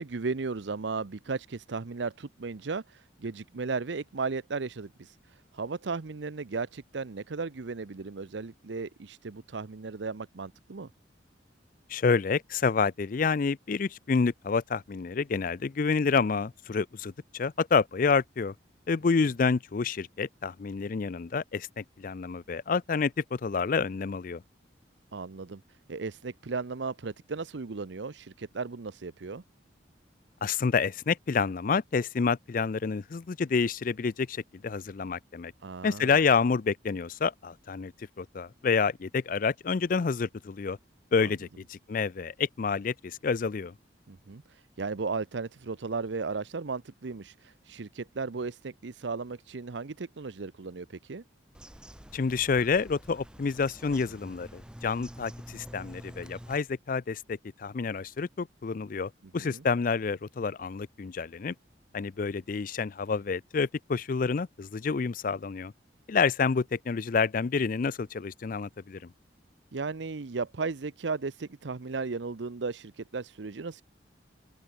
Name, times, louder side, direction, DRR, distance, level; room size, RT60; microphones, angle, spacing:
voice 1, 0.0-10.9 25.1-25.6 25.9-29.4 35.6-36.1 41.2-41.3 44.1-51.2 59.4-59.6 69.7-73.8, right 4 dB, 75° right, 0.7 m, -35 dB
voice 2, 11.9-18.5 18.9-24.4 30.4-35.5 35.8-37.9 38.2-40.8 41.1-43.7 52.1-61.5 61.9-65.7 66.1-69.1, left 5 dB, 45° left, 0.4 m, -28 dB
Bird vocalization bird call bird song, 51.5-56.6, equal, 5° right, 1.4 m, -47 dB
open air
head